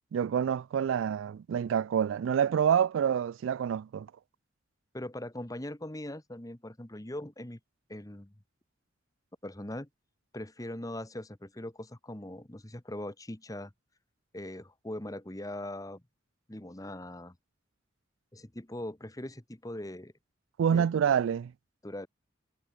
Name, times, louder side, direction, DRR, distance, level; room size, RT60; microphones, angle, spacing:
voice 1, 0.1-4.1 20.6-21.5, right 8 dB, 80° right, 0.3 m, -27 dB
voice 2, 4.9-7.6 7.9-8.3 9.4-9.9 10.3-13.7 14.3-16.0 16.5-17.4 18.3-20.1 20.7-20.9 21.8-22.1, left 1 dB, 20° left, 1.4 m, -41 dB
head